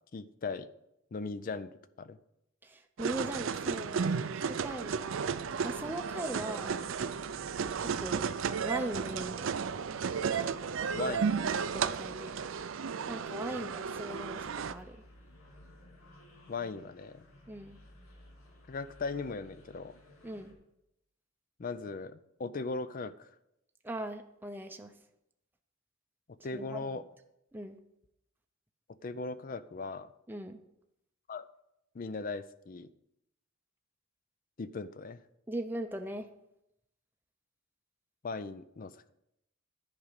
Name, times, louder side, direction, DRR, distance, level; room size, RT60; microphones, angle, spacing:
voice 1, 0.1-0.7 1.1-1.7 2.0-2.2 10.9-11.5 16.5-17.3 18.7-19.9 21.6-23.3 26.4-27.0 29.0-30.1 31.3-31.5 31.9-32.9 34.6-35.2 38.2-39.1, left 4 dB, 40° left, 14 dB, 0.4 m, -38 dB
voice 2, 2.6-5.3 5.6-6.8 7.8-8.3 8.6-9.5 11.0-11.2 11.5-12.4 13.1-15.0 17.5-17.8 20.2-20.5 23.8-24.9 26.5-26.9 27.5-27.8 30.3-30.6 35.5-36.3, right 1 dB, 10° right, 5 dB, 0.6 m, -40 dB
sound 1, 3.0-14.7, right 6 dB, 65° right, 0.5 m, -33 dB
sound 2, 4.6-20.5, left 1 dB, 85° left, 2.4 m, -57 dB
10.5 x 5.1 x 8.1 m, 0.83 s
head